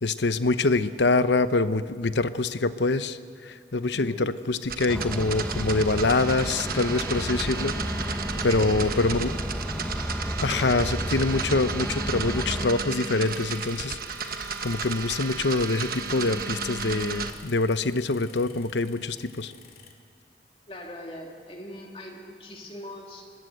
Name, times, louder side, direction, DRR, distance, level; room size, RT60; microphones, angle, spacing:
voice 1, 0.0-7.7 8.4-9.3 10.4-19.5, left 3 dB, 80° left, 12 dB, 0.9 m, -25 dB
voice 2, 3.9-4.3 8.3-8.9 20.7-23.2, left 1 dB, 30° left, 0 dB, 3.0 m, -41 dB
sound 1, 4.6-17.3, right 5 dB, 50° right, 1.2 m, -33 dB
sound 2, 4.9-12.7, equal, 5° left, 1.0 m, -32 dB
sound 3, 13.2-19.9, left 6 dB, 55° left, 2.5 m, -51 dB
25.0 x 19.5 x 8.0 m, 2.3 s
head